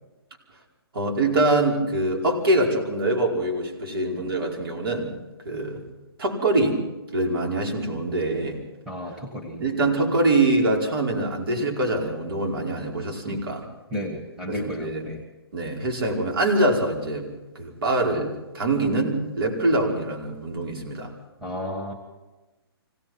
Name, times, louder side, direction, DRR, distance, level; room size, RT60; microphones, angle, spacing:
voice 1, 0.9-5.1 5.5-5.8 6.2-6.8 7.1-8.6 9.6-13.7 14.4-15.1 15.5-17.3 17.6-21.1, right 2 dB, 65° right, 1 dB, 5.2 m, -24 dB
voice 2, 8.9-9.6 13.3-13.4 13.9-15.2 21.4-21.9, equal, 5° right, -1 dB, 1.7 m, -32 dB
25.5 x 17.5 x 6.1 m, 1.1 s
hypercardioid pair, 165°, 13 cm